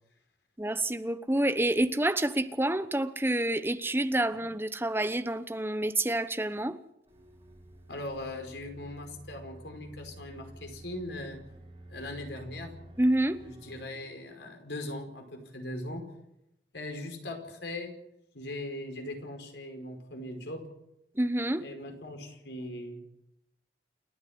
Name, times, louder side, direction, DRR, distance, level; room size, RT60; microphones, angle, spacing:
voice 1, 0.6-6.8 13.0-13.4 21.2-21.6, right 1 dB, 15° right, 1.0 m, -28 dB
sound 1, 7.1-13.8, right 1 dB, 30° right, 4.2 m, -50 dB
voice 2, 7.9-11.4 11.9-12.7 13.4-16.0 16.7-18.0 18.3-20.7 21.6-23.0, left 1 dB, 85° left, 5.1 m, -40 dB
29.0 x 9.8 x 9.7 m
head